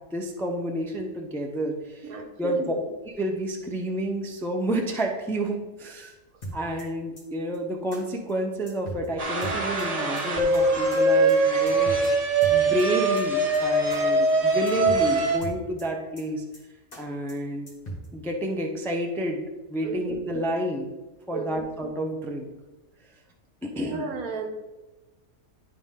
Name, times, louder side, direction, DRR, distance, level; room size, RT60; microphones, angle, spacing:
voice 1, 0.1-2.6 3.0-6.1 6.5-12.0 12.5-16.4 17.0-17.7 18.1-19.4 19.7-20.9 21.3-22.5 23.6-24.1, right 1 dB, 5° left, 1 dB, 0.4 m, -30 dB
voice 2, 2.1-2.8 19.8-20.2 21.3-21.6 23.8-24.5, right 4 dB, 80° right, 3 dB, 1.5 m, -34 dB
sound 1, 6.4-6.8 7.2-7.3 7.5-7.6 7.9-8.0 8.3-8.4 8.7-9.1 9.4-9.8 10.2-10.3 10.5-10.6 10.9-11.0 11.3-11.4 11.7-12.1 12.4-12.8 13.2-13.3 13.5-13.6 13.9-14.0 14.3-14.4 14.7-15.1 15.4-15.8 16.2-16.3 16.5-16.6 16.9-17.0 17.3-17.4 17.7-18.1, right 1 dB, 40° left, 2.0 m, -38 dB
sound 2, 9.2-15.4, right 2 dB, 30° right, 0.8 m, -22 dB
11.0 x 4.2 x 3.7 m, 1.1 s
omnidirectional pair, 1.5 m